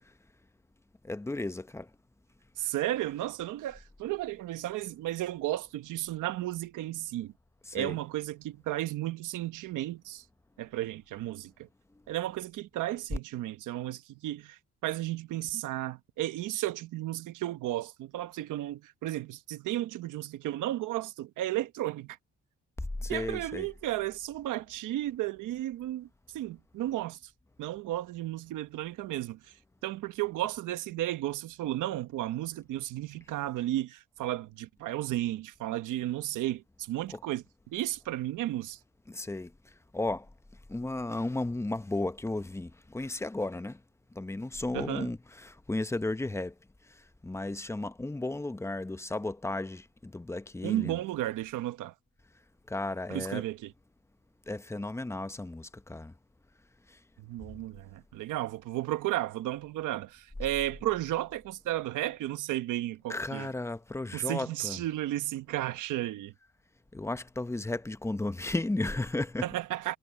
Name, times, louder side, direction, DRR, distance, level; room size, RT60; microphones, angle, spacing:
voice 1, 1.0-1.9 7.7-8.0 23.0-23.7 39.1-39.5 39.9-40.3 40.7-43.8 44.1-46.5 47.2-51.0 52.7-53.4 54.5-56.1 63.1-64.8 66.9-69.5, left 2 dB, 10° left, 0.9 m, -34 dB
voice 2, 2.6-7.3 7.7-10.2 10.6-11.7 12.1-22.2 23.1-26.1 26.3-27.2 27.6-29.5 29.8-38.8 44.7-45.1 50.6-51.9 53.1-53.7 57.2-63.5 64.1-66.3 69.4-70.0, right 14 dB, 85° right, 1.2 m, -33 dB
cardioid pair, 90°, 30 cm